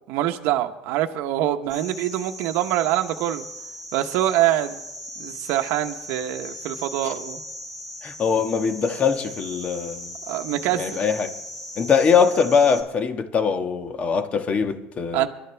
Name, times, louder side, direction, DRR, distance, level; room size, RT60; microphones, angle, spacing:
voice 1, 0.0-3.5 3.9-4.8 5.2-7.4 10.3-10.8 15.1-15.3, right 13 dB, 70° right, 0.9 m, -24 dB
sound 1, 1.7-12.8, equal, 10° left, 6.5 m, -38 dB
voice 2, 8.0-10.1 10.7-11.3 11.8-15.3, left 6 dB, 35° left, 1.4 m, -22 dB
24.0 x 12.5 x 3.4 m
supercardioid pair, 115°, 4 cm